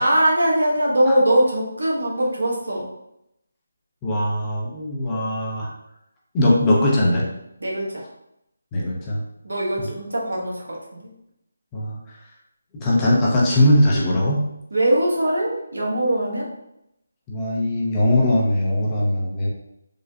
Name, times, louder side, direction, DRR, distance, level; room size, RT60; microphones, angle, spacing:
voice 1, 0.0-2.9 7.6-8.0 9.4-11.0 14.7-16.5, right 1 dB, 80° right, -3 dB, 1.1 m, -21 dB
voice 2, 4.0-5.7 6.3-7.3 8.7-9.2 9.8-10.0 11.7-12.0 12.7-14.4 17.3-19.5, left 1 dB, 20° left, -4 dB, 0.6 m, -20 dB
3.6 x 2.1 x 2.7 m, 0.82 s
figure-of-eight pair, 160°, 0 cm